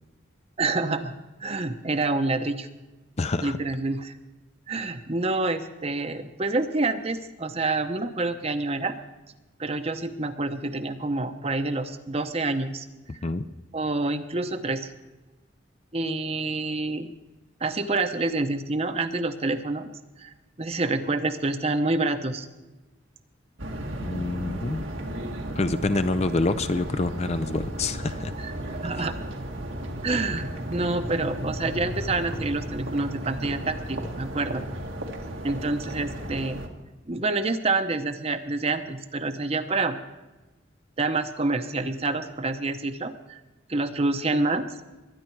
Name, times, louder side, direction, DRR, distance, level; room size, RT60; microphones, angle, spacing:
voice 1, 0.6-1.1 1.4-2.7 3.4-4.1 4.7-8.9 9.6-12.9 13.7-14.9 15.9-17.1 17.6-19.9 20.2-20.3 20.6-22.5 28.4-29.2 30.0-34.7 35.4-36.6 37.1-40.0 41.0-43.4 43.7-44.6, right 3 dB, 30° right, 9 dB, 0.9 m, -27 dB
voice 2, 3.2-3.6 13.2-13.4 24.0-24.8 25.6-28.3, left 2 dB, 35° left, 11 dB, 0.5 m, -26 dB
sound 1, 23.6-36.7, right 1 dB, 90° right, 2.0 m, -34 dB
22.0 x 10.5 x 4.6 m, 1.1 s
head